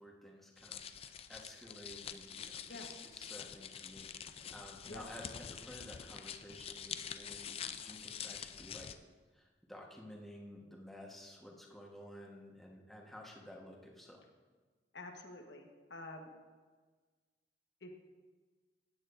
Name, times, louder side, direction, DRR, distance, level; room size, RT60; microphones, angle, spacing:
voice 1, 0.0-8.9 9.3-14.2, left 1 dB, ahead, -2 dB, 1.2 m, -53 dB
sound 1, 0.6-9.0, left 8 dB, 35° left, 0.3 m, -46 dB
voice 2, 14.9-16.3 17.8-17.9, left 2 dB, 75° left, 2 dB, 1.2 m, -48 dB
15.0 x 9.0 x 2.6 m, 1.4 s
head